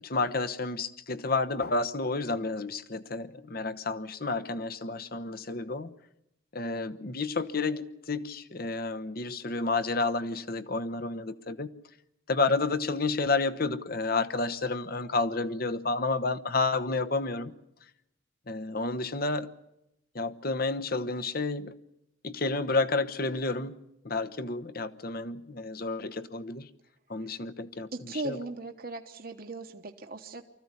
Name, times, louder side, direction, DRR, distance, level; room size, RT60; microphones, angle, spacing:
voice 1, 0.0-5.9 6.5-11.7 12.3-17.5 18.5-19.5 20.1-21.8 22.2-23.8 24.0-26.7 27.1-28.4, left 3 dB, 50° left, 1.0 m, -30 dB
voice 2, 27.9-30.4, right 2 dB, 45° right, 1.2 m, -38 dB
24.5 x 15.0 x 9.7 m
head